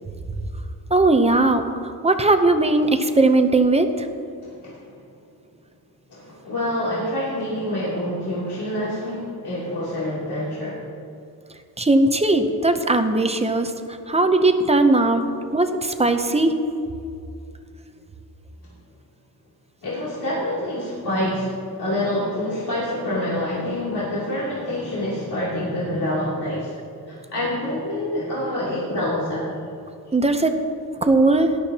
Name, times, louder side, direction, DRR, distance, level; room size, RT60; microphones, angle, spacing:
voice 1, 0.9-4.1 11.8-13.7 14.1-15.2 15.5-16.6 30.1-30.6 31.0-31.5, right 2 dB, 15° right, 7 dB, 0.6 m, -18 dB
voice 2, 4.4-5.0 6.1-10.8 18.6-18.7 19.8-26.7 27.1-29.7, left 1 dB, 80° left, -8 dB, 2.8 m, -27 dB
18.5 x 12.0 x 2.8 m, 2.5 s
wide cardioid pair, 180°, 39 cm